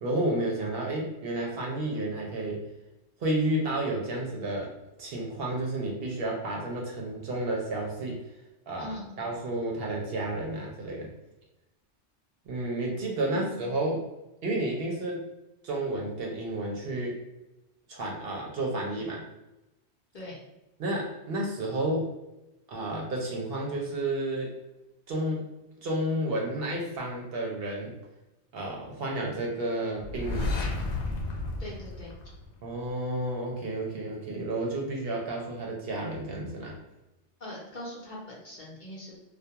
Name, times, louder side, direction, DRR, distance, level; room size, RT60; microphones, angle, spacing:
voice 1, 0.0-2.6 3.2-4.7 5.0-8.2 8.7-11.1 12.5-14.0 14.4-15.3 15.6-17.2 17.9-19.3 20.8-22.1 22.7-24.6 25.1-25.4 25.8-27.9 28.5-30.6 32.6-36.8, right 1 dB, 65° right, -1 dB, 0.7 m, -31 dB
voice 2, 8.8-9.1 13.2-13.6 20.1-20.4 31.6-32.1 37.4-39.2, left 1 dB, 50° left, -5 dB, 0.7 m, -41 dB
sound 1, 30.0-32.9, left 2 dB, 80° left, 0.9 m, -32 dB
2.2 x 2.2 x 2.8 m, 0.96 s
omnidirectional pair, 1.1 m